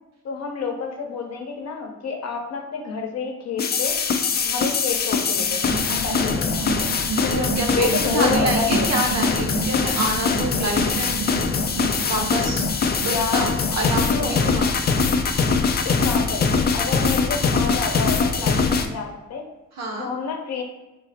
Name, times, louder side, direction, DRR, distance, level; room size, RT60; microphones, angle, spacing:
voice 1, 0.2-4.0 4.5-5.6 5.9-6.9 7.7-8.9 13.1-13.5 14.1-14.3 15.8-19.4 20.0-20.6, left 5 dB, 60° left, 2 dB, 0.8 m, -29 dB
sound 1, 3.6-18.9, left 5 dB, 35° left, 0.4 m, -22 dB
sound 2, 5.3-15.3, right 5 dB, 80° right, 0.5 m, -32 dB
voice 2, 7.2-11.2 12.1-12.7 13.0-13.4 13.7-14.7 17.0-17.1 19.8-20.1, right 1 dB, 60° right, -1 dB, 1.1 m, -27 dB
3.9 x 2.0 x 4.0 m, 1.0 s
cardioid pair, 90°, 30 cm